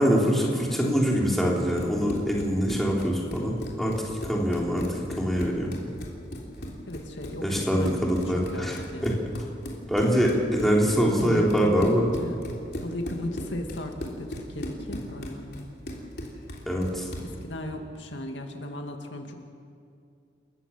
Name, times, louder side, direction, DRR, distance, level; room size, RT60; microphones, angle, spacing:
voice 1, 0.0-3.9 4.2-5.7 7.4-9.1 9.9-12.1 16.7-17.1, equal, ahead, -3 dB, 3.5 m, -24 dB
Run, 1.6-17.4, equal, 60° left, 3.4 m, -38 dB
voice 2, 6.9-9.2 9.9-10.3 11.2-11.9 12.2-12.4 12.8-15.7 17.2-19.5, left 1 dB, 85° left, 3 dB, 2.2 m, -36 dB
28.5 x 15.0 x 7.4 m, 2.5 s
head